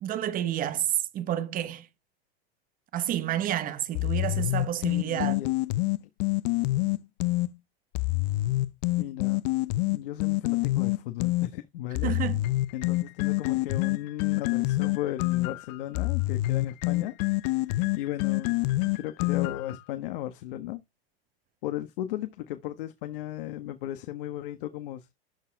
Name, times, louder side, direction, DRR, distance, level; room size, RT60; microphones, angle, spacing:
voice 1, 0.0-1.9 2.9-5.4 12.0-12.4, right 11 dB, 25° right, 1.0 m, -30 dB
sound 1, 4.0-7.5 8.0-11.5 12.0-19.8, left 19 dB, 40° left, 0.6 m, -27 dB
voice 2, 5.0-5.5 9.0-9.4 9.9-12.1 12.7-17.1 18.0-18.6 18.9-20.8 21.6-25.1, left 13 dB, 60° left, 1.3 m, -35 dB
12.0 x 4.7 x 4.6 m
hypercardioid pair, 135°, 31 cm